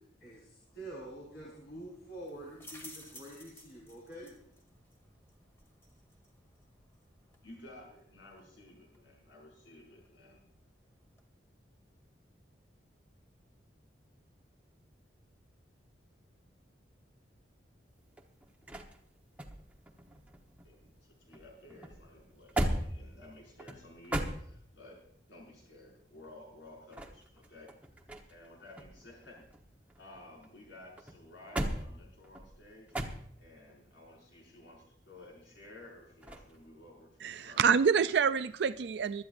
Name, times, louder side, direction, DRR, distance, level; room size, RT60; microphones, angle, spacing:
voice 1, 0.2-4.3, right 1 dB, 60° left, -5 dB, 4.4 m, -47 dB
sound 1, 0.7-11.3, equal, 15° left, 1.8 m, -58 dB
voice 2, 7.4-10.4 20.6-25.0 25.3-27.7 28.3-29.5 30.0-37.6, left 1 dB, 75° left, -2 dB, 5.9 m, -54 dB
sound 2, 17.9-21.0 21.3-25.0 26.7-28.5 28.8-30.5 31.0-33.6 36.2-36.6, right 1 dB, 10° right, 1.1 m, -38 dB
voice 3, 37.2-39.2, right 6 dB, 65° right, 11 dB, 0.4 m, -27 dB
24.0 x 12.0 x 2.6 m, 0.69 s
head